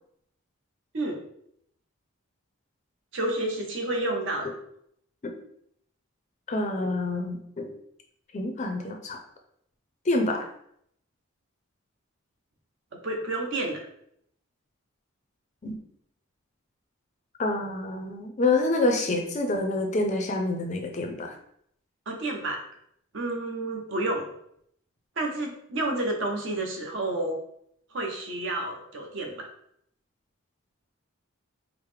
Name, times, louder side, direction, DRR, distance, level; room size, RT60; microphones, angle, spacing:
voice 1, 3.1-4.5 13.0-13.8 22.1-22.6 23.1-24.3 25.2-27.4 27.9-29.5, right 2 dB, 60° right, 1 dB, 0.7 m, -30 dB
voice 2, 6.5-7.7 8.3-9.2 10.1-10.5 15.6-15.8 17.4-21.3, left 2 dB, 35° left, 3 dB, 0.4 m, -27 dB
4.6 x 2.0 x 3.2 m, 0.71 s
head